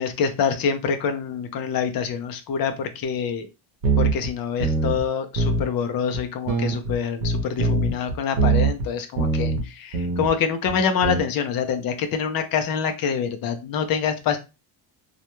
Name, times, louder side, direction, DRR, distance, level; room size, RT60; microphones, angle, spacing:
voice 1, 0.0-3.5 4.0-14.4, left 6 dB, 55° left, 7 dB, 0.6 m, -26 dB
sound 1, 3.8-4.3 4.6-5.1 5.4-5.7 6.1-6.2 6.5-8.9 9.2-9.6 9.9-10.3 10.7-11.2, right 3 dB, 85° right, 0.8 m, -22 dB
2.4 x 2.1 x 2.9 m, 0.27 s
cardioid pair, 155°, 43 cm